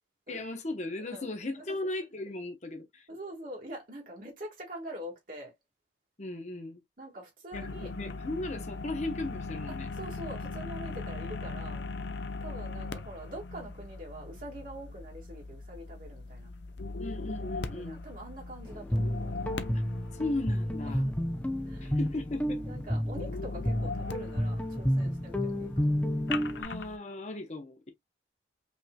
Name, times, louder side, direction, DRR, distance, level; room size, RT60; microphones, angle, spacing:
voice 1, 0.3-3.1 6.2-6.8 7.5-9.9 17.0-18.0 19.7-19.8 20.1-21.0 21.8-22.6 26.6-27.9, left 2 dB, 35° left, 1.0 m, -36 dB
voice 2, 1.0-1.3 1.6-1.8 3.1-5.5 7.0-7.9 9.7-11.8 12.4-16.5 17.7-19.2 20.8-21.3 21.6-22.0 22.6-25.9, right 1 dB, 45° right, 1.8 m, -44 dB
sound 1, 7.5-27.0, left 3 dB, 65° left, 0.6 m, -40 dB
Guitar, 18.6-26.6, equal, 10° left, 0.7 m, -31 dB
5.4 x 3.2 x 2.2 m
head